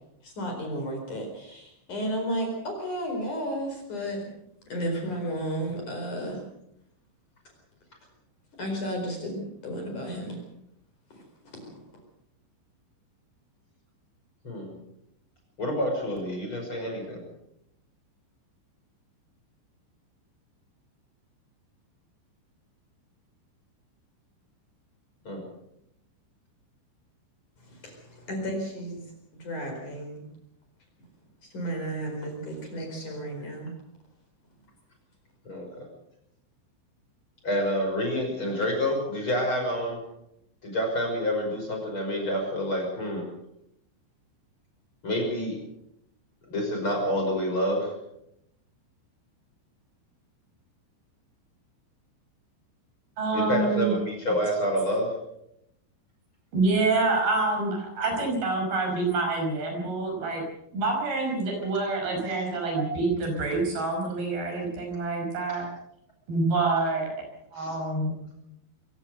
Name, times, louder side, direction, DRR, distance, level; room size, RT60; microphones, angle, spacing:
voice 1, 0.2-4.3 4.7-6.4 8.6-10.4 11.1-11.7 27.7-29.0 29.3-30.2 31.4-33.7, equal, 40° left, 3 dB, 5.6 m, -33 dB
voice 2, 14.4-14.8 15.6-17.2 25.2-25.4 35.4-35.9 37.4-40.0 40.6-43.2 45.0-45.6 46.4-47.9 53.3-55.1 62.3-62.8 67.5-67.8, equal, 25° left, 1 dB, 6.1 m, -28 dB
voice 3, 53.2-54.0 56.5-60.4 60.7-65.7 66.3-67.1 67.5-68.2, right 3 dB, 50° right, 2 dB, 7.1 m, -27 dB
24.0 x 16.5 x 6.7 m, 0.79 s
omnidirectional pair, 5.6 m